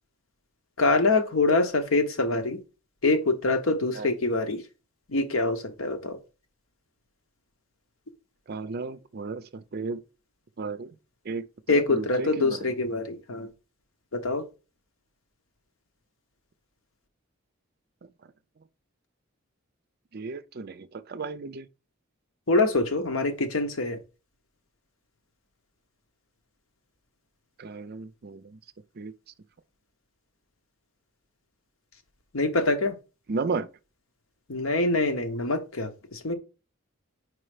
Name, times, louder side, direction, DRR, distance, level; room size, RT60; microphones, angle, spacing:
voice 1, 0.8-2.6 3.0-4.6 5.1-6.2 11.7-13.5 14.1-14.4 22.5-24.0 32.3-33.0 34.5-36.4, left 2 dB, 80° left, 1.0 m, -25 dB
voice 2, 8.5-10.0 10.6-10.9 11.2-12.6 20.1-21.7 27.6-28.6 29.0-29.1 33.3-33.7, right 4 dB, 50° right, 0.5 m, -34 dB
4.8 x 4.4 x 4.9 m
head